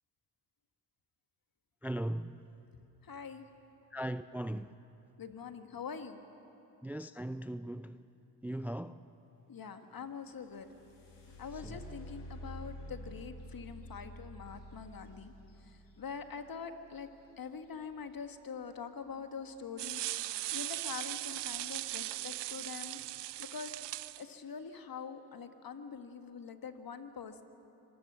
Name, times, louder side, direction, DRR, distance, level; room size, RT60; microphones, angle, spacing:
voice 1, 1.8-2.4 3.9-4.7 6.8-8.0 8.4-9.0 11.6-11.8, right 1 dB, 5° right, 0.4 m, -38 dB
voice 2, 3.0-3.4 5.2-6.2 9.5-10.7 11.4-15.3 15.6-17.1 17.4-20.0 20.5-23.0 23.4-23.7 24.2-27.4, left 6 dB, 50° left, 1.7 m, -44 dB
sound 1, 10.2-18.1 20.1-20.3 20.7-21.3 21.9-22.0 22.5-22.8, equal, 80° left, 5.2 m, -49 dB
sound 2, 19.8-24.2, right 16 dB, 70° right, 0.6 m, -39 dB
25.0 x 19.5 x 6.2 m
supercardioid pair, 45°, 44 cm